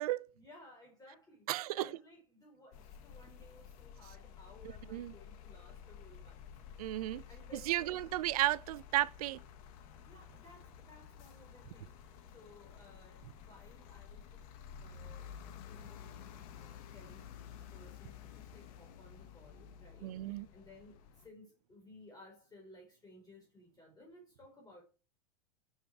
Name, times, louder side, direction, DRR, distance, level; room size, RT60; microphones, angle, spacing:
voice 1, 0.3-6.4 7.3-8.2 10.0-14.5 14.8-15.3 15.7-24.8, left 1 dB, 20° left, 4.9 m, -59 dB
voice 2, 1.5-1.9 4.9-5.1 6.8-7.2 7.7-9.4 20.0-20.5, right 15 dB, 70° right, 0.7 m, -33 dB
sound 1, 2.7-21.3, left 8 dB, 60° left, 1.9 m, -52 dB
10.5 x 7.5 x 4.8 m
hypercardioid pair, 95°, 20 cm